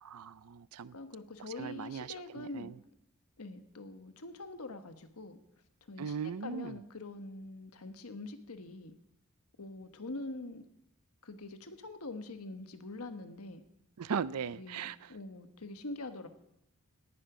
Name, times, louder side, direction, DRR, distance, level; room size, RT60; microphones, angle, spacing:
voice 1, 0.0-0.9 1.6-2.1 2.3-2.8 6.0-6.8 14.0-15.1, right 6 dB, 85° right, 0.5 m, -38 dB
voice 2, 0.9-2.7 3.4-5.4 5.9-9.0 9.6-10.6 11.2-13.6 14.5-16.3, left 2 dB, 75° left, 1.4 m, -44 dB
18.5 x 11.0 x 5.1 m
head